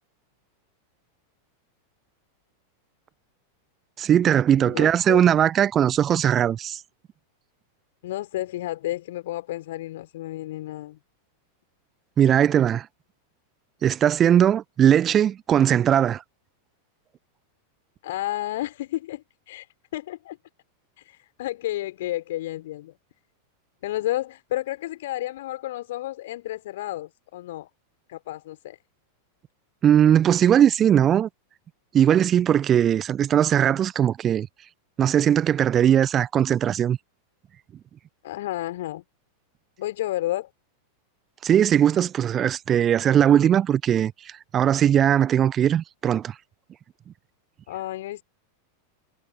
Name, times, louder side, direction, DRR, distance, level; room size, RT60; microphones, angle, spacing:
voice 1, 4.0-6.8 12.2-12.9 13.8-16.2 29.8-31.3 31.9-34.5 35.0-37.0 41.4-46.3, right 9 dB, 25° right, 0.7 m, -19 dB
voice 2, 4.6-5.2 8.0-11.0 18.0-19.7 19.9-20.4 21.0-22.9 23.8-27.7 28.1-28.8 38.2-39.0 39.8-40.5 47.7-48.2, left 15 dB, 55° left, 5.4 m, -31 dB
figure-of-eight pair, 90°, 0 cm